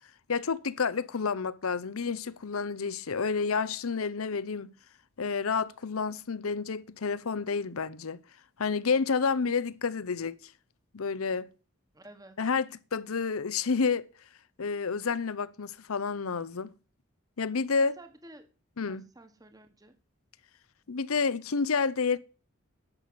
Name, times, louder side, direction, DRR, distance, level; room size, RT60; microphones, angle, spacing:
voice 1, 0.3-4.7 5.2-8.2 8.6-10.4 10.9-11.5 12.4-14.1 14.6-16.7 17.4-18.0 18.8-19.1 20.9-22.2, left 5 dB, 90° left, 0.7 m, -29 dB
voice 2, 11.9-12.4 17.8-18.5 18.9-20.0, right 1 dB, 15° right, 1.3 m, -51 dB
11.0 x 7.0 x 7.9 m
head